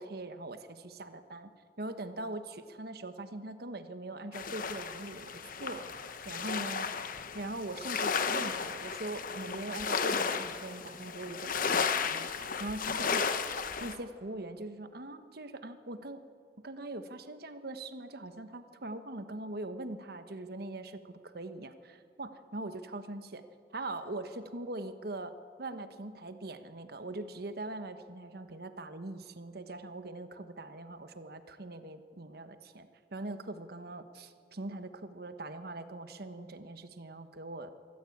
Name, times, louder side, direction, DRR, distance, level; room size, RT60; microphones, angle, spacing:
voice 1, 0.0-1.5 1.8-6.9 7.3-13.3 13.8-16.2 16.6-23.4 23.7-25.3 25.6-37.7, right 2 dB, 60° right, 10 dB, 1.3 m, -42 dB
sound 1, 4.3-14.0, left 5 dB, 50° left, 1.0 m, -34 dB
24.0 x 14.5 x 8.6 m, 2.3 s
head